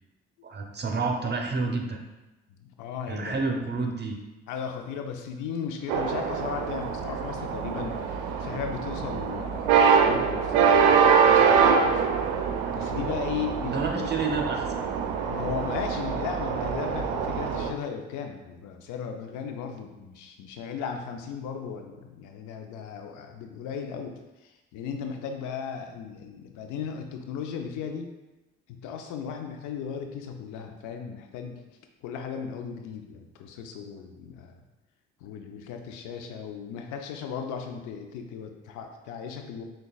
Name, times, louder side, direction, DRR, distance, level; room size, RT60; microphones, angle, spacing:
voice 1, 0.4-2.0 3.1-4.2 13.6-14.7, right 3 dB, 35° right, 2 dB, 0.8 m, -29 dB
voice 2, 2.6-3.4 4.5-12.1 12.7-14.1 15.3-24.1 24.4-28.1 28.7-31.6 32.0-34.6 35.2-39.6, left 7 dB, 75° left, 4 dB, 0.5 m, -36 dB
sound 1, 5.9-17.7, right 6 dB, 80° right, 0.5 m, -24 dB
6.3 x 2.4 x 2.3 m, 1.1 s
supercardioid pair, 55°, 30 cm